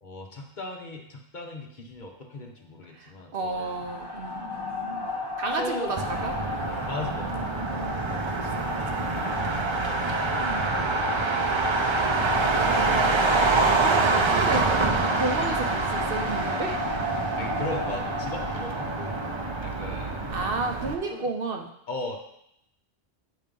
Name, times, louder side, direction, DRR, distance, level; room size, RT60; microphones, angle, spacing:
voice 1, 0.0-3.8 5.5-6.0 6.7-7.4 9.1-9.3 17.4-19.2 19.6-20.2 20.8-21.3 21.9-22.2, left 2 dB, 45° left, 2 dB, 1.0 m, -38 dB
voice 2, 2.9-4.5 5.4-6.3 8.3-8.9 10.3-11.3 13.6-14.7 15.1-17.0 20.3-21.7, right 3 dB, 60° right, 3 dB, 0.9 m, -32 dB
sound 1, 3.5-21.2, left 1 dB, 25° left, 0.8 m, -32 dB
Motor vehicle (road), 6.0-20.9, right 4 dB, 35° right, 0.5 m, -27 dB
8.6 x 3.2 x 5.2 m, 0.76 s
omnidirectional pair, 1.1 m